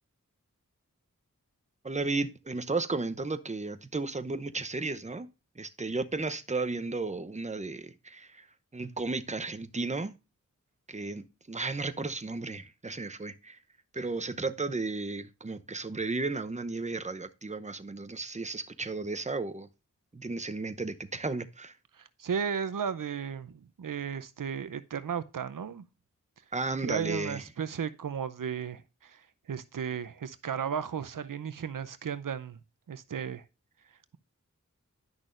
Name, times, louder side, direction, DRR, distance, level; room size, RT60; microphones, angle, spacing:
voice 1, 1.8-5.3 5.6-8.5 8.7-10.1 10.9-13.6 13.9-19.7 20.1-21.8 26.5-27.4, right 3 dB, 20° right, 0.7 m, -34 dB
voice 2, 22.2-25.8 26.8-29.2 29.5-32.6 32.9-33.4, right 7 dB, 85° right, 0.6 m, -34 dB
10.5 x 6.2 x 2.5 m
wide cardioid pair, 50°, 32 cm